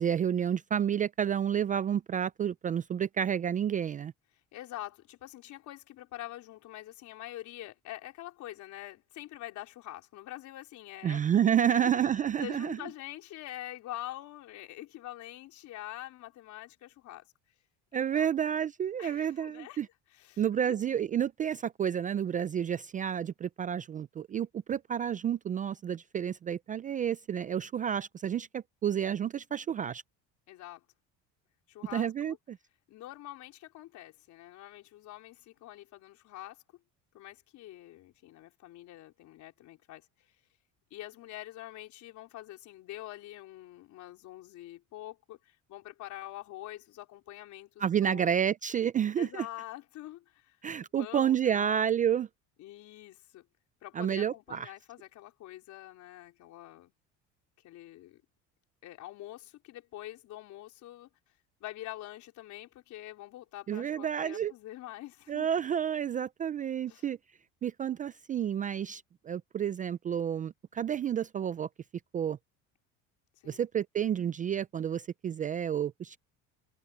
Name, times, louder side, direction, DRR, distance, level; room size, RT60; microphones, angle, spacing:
voice 1, 0.0-4.1 11.0-12.8 17.9-19.9 20.4-30.0 31.9-32.6 47.8-49.5 50.6-52.3 54.0-54.7 63.7-64.5 65.3-67.2 67.6-71.7 72.1-72.4 73.5-76.2, right 9 dB, 25° right, 0.3 m, -30 dB
voice 2, 4.5-11.4 11.7-17.3 17.9-18.3 19.0-20.7 29.5-29.7 30.5-30.9 31.7-32.4 32.9-36.6 37.1-40.4 40.9-48.4 49.2-50.6 51.0-51.8 52.6-53.5 53.8-56.9 57.6-58.2 58.8-61.1 61.6-65.5 66.9-67.1 73.4-73.6, left 14 dB, 60° left, 4.3 m, -45 dB
cardioid pair, 135°, 33 cm